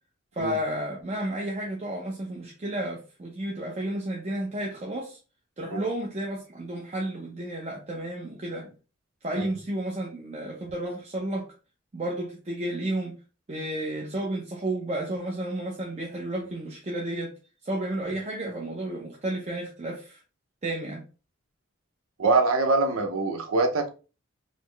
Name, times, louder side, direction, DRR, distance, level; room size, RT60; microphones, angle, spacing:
voice 1, 0.3-5.2 5.6-8.7 9.2-11.5 11.9-13.2 13.5-17.3 17.6-20.2 20.6-21.0, right 1 dB, 30° right, 0.6 m, -32 dB
voice 2, 22.2-23.9, right 3 dB, 90° right, 0.7 m, -23 dB
4.1 x 2.0 x 3.2 m
head